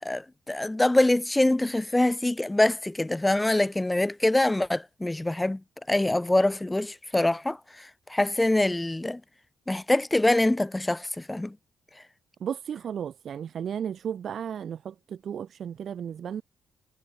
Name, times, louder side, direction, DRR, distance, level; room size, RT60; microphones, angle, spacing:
voice 1, 0.0-5.6 5.9-9.2 9.7-11.6, left 1 dB, 10° left, 0.7 m, -24 dB
voice 2, 12.4-16.4, right 8 dB, 60° right, 5.0 m, -34 dB
cardioid pair, 90°, 0 cm